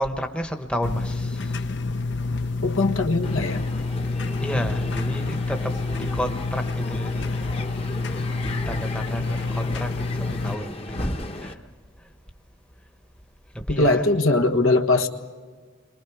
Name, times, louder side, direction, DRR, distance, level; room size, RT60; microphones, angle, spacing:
voice 1, 0.0-1.7 4.4-7.9 8.4-11.6 13.7-14.1, equal, 5° left, 5 dB, 1.0 m, -31 dB
sound 1, 0.8-10.5, left 3 dB, 55° left, 0.7 m, -28 dB
voice 2, 2.6-3.6 13.7-15.1, left 2 dB, 85° left, 4 dB, 1.5 m, -20 dB
Crowd, 3.2-11.5, left 2 dB, 30° left, 1.1 m, -36 dB
29.5 x 23.0 x 4.9 m, 1.5 s
head